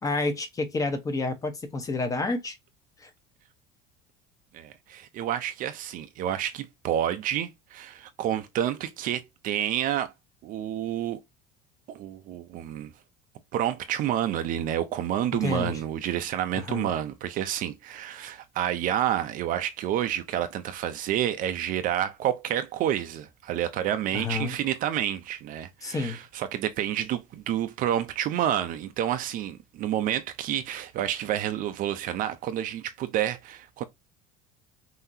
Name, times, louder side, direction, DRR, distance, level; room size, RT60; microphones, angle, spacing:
voice 1, 0.0-2.6 3.0-3.1 15.4-15.7 16.5-16.9 24.1-24.5 25.8-26.2, left 3 dB, 20° left, 1.0 m, -29 dB
voice 2, 4.5-10.1 10.4-11.2 11.9-12.9 13.5-33.8, right 11 dB, 50° right, 0.7 m, -29 dB
5.8 x 3.0 x 2.7 m
cardioid pair, 140°, 18 cm